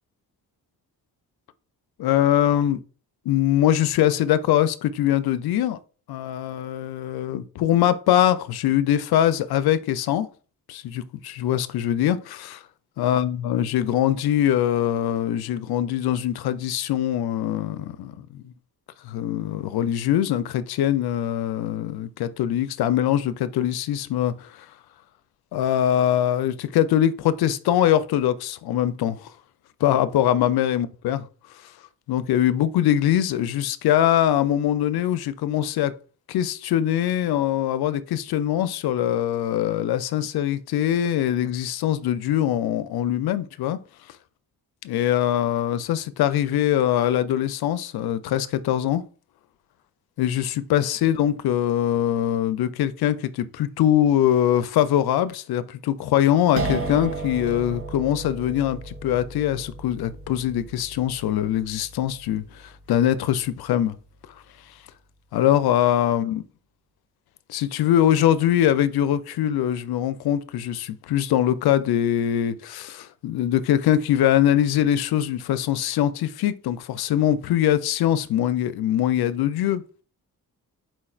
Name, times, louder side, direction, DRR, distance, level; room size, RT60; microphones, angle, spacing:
voice 1, 2.0-2.8 3.3-5.8 6.1-10.3 10.7-12.6 13.0-18.5 19.0-24.5 25.5-29.3 29.8-31.2 32.1-35.9 36.3-43.8 44.8-49.0 50.2-62.4 62.9-63.9 65.3-66.4 67.5-79.8, left 11 dB, 80° left, 0.5 m, -22 dB
sound 1, 56.6-63.5, right 3 dB, 40° right, 0.6 m, -34 dB
4.4 x 2.4 x 4.3 m
wide cardioid pair, 150°, 37 cm